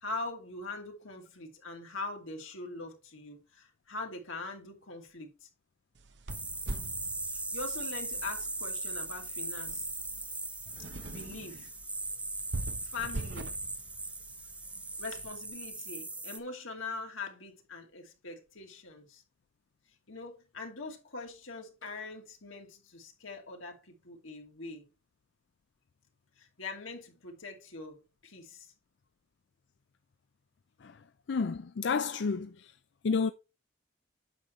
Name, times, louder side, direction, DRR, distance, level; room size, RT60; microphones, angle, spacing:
voice 1, 0.0-5.5 7.3-9.9 11.1-11.7 12.8-13.5 15.0-19.2 20.1-24.8 26.4-28.7, left 3 dB, 85° left, 2.5 m, -42 dB
sound 1, 6.0-15.3, right 2 dB, 60° right, 0.9 m, -44 dB
sound 2, 6.3-16.4, right 2 dB, 5° right, 0.5 m, -39 dB
voice 2, 31.3-32.7 33.0-33.3, left 5 dB, 60° left, 0.4 m, -30 dB
9.1 x 6.8 x 3.2 m
head